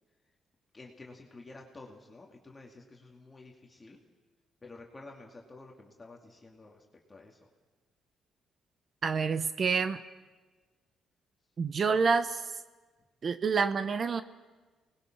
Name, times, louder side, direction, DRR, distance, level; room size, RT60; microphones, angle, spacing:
voice 1, 0.7-4.0 4.6-7.4, left 2 dB, 25° left, 0 dB, 2.3 m, -51 dB
voice 2, 9.0-10.0 11.6-12.5 13.2-14.2, right 5 dB, 45° right, 12 dB, 0.8 m, -28 dB
24.5 x 20.0 x 6.0 m, 1.3 s
cardioid pair, 90°, 0 cm